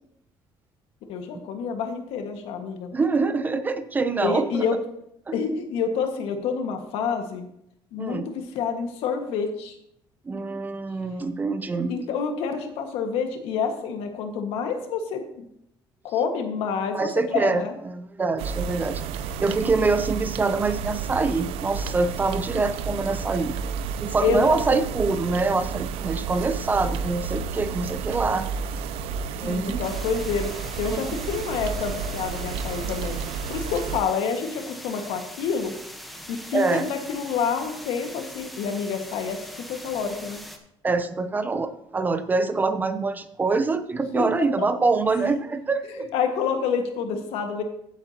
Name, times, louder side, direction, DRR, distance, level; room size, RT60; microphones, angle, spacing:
voice 1, 1.1-2.9 4.2-4.8 5.3-7.5 7.9-9.7 11.9-15.4 16.0-17.8 24.2-24.8 29.4-33.2 33.5-35.7 36.3-39.4 39.7-40.4 44.1-44.2 44.6-44.7 45.8-47.6, left 6 dB, 85° left, 5 dB, 1.5 m, -28 dB
voice 2, 2.9-4.7 5.3-5.4 8.0-8.3 10.3-11.9 16.9-19.0 19.4-23.7 24.0-28.4 29.4-29.9 30.9-31.0 36.5-36.9 40.8-46.1, right 3 dB, 20° right, 11 dB, 0.5 m, -25 dB
sound 1, 18.4-34.0, right 6 dB, 90° right, 0.6 m, -31 dB
sound 2, 29.8-40.6, equal, ahead, 1.0 m, -41 dB
15.5 x 8.2 x 2.8 m, 0.77 s
cardioid pair, 160°, 10 cm